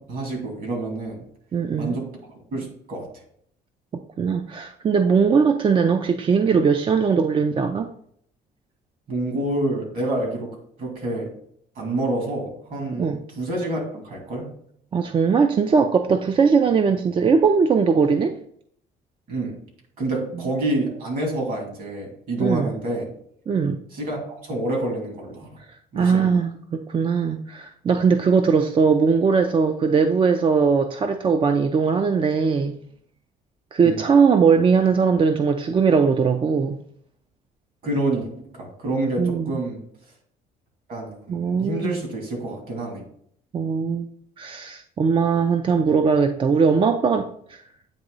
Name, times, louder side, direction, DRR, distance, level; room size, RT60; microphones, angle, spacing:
voice 1, 0.1-1.2 1.8-2.1 2.5-3.1 9.1-11.3 11.8-14.5 19.3-19.5 20.0-23.1 23.9-25.6 25.9-26.3 33.8-34.0 37.8-38.3 38.5-39.8 40.9-43.0, right 1 dB, 55° right, 2.6 m, -28 dB
voice 2, 1.5-2.0 4.2-7.9 13.0-13.2 14.9-18.3 20.3-20.4 22.4-22.7 23.5-23.8 26.0-32.8 33.7-36.8 39.2-39.6 41.3-42.0 43.5-44.1 44.4-47.6, right 5 dB, 30° right, 0.4 m, -20 dB
8.8 x 2.9 x 3.9 m
cardioid pair, 110°, 17 cm